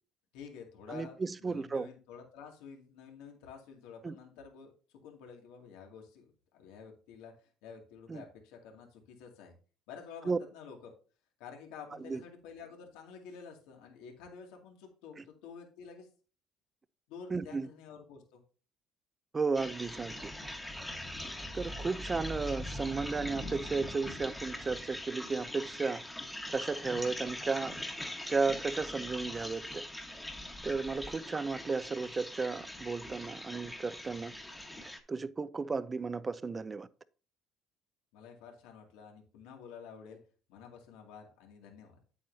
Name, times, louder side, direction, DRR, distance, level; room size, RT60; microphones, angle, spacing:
voice 1, 0.3-9.5 9.9-10.9 11.4-16.1 17.1-18.4 38.1-40.2 40.5-42.0, left 6 dB, 85° left, 2.4 m, -50 dB
voice 2, 0.9-1.9 4.0-4.1 8.1-8.2 10.3-10.4 12.0-12.2 17.3-17.7 19.3-20.3 21.5-26.0 26.5-27.7 28.3-29.9 30.6-34.3 34.8-36.9, right 4 dB, 25° right, 0.5 m, -34 dB
sound 1, 19.5-35.0, left 1 dB, 5° left, 1.4 m, -42 dB
9.2 x 8.5 x 2.7 m
cardioid pair, 115°, 0 cm